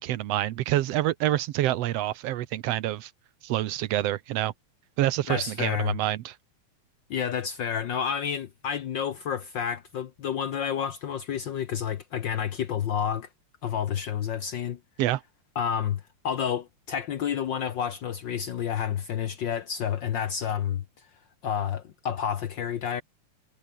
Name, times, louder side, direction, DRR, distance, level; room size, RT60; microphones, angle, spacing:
voice 1, 0.0-3.1 3.4-4.5 5.0-6.3 15.0-15.2, right 14 dB, 70° right, 1.6 m, -27 dB
voice 2, 5.3-6.0 7.1-13.3 13.6-14.8 15.5-21.1 21.4-23.0, left 8 dB, 85° left, 1.0 m, -30 dB
omnidirectional pair, 3.5 m